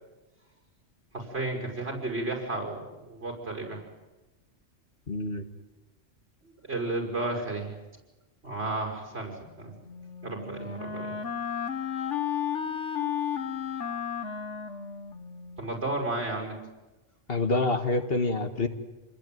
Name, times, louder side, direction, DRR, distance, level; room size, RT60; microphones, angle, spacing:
voice 1, 1.1-3.8 6.7-7.8 8.4-9.7 10.2-11.1 15.6-16.6, right 2 dB, 60° right, 1 dB, 6.3 m, -33 dB
voice 2, 5.1-5.4 17.3-18.7, left 3 dB, 55° left, 8 dB, 1.9 m, -27 dB
Wind instrument woodwind instrument, 9.9-15.7, left 8 dB, 80° left, 1.6 m, -33 dB
27.5 x 21.5 x 9.4 m, 1.1 s
omnidirectional pair, 1.2 m